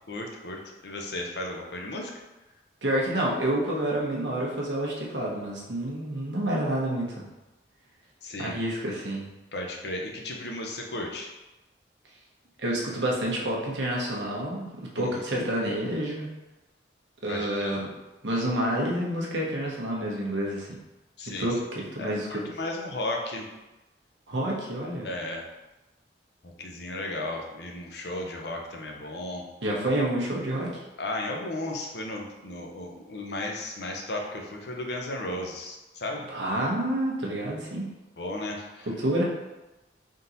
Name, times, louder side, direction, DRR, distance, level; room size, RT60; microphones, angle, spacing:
voice 1, 0.1-2.1 8.2-8.6 9.5-11.3 15.0-15.5 17.3-17.7 21.2-21.5 22.0-23.5 25.0-25.4 26.6-29.4 31.0-36.3 38.2-38.9, left 2 dB, 65° left, 0 dB, 0.7 m, -34 dB
voice 2, 2.8-7.2 8.4-9.3 12.6-14.7 14.9-16.3 17.2-17.9 18.2-20.7 21.4-22.4 24.3-25.1 29.6-30.8 36.3-37.9 39.0-39.2, right 1 dB, 80° right, -3 dB, 1.0 m, -28 dB
3.7 x 2.8 x 3.9 m, 1.0 s
head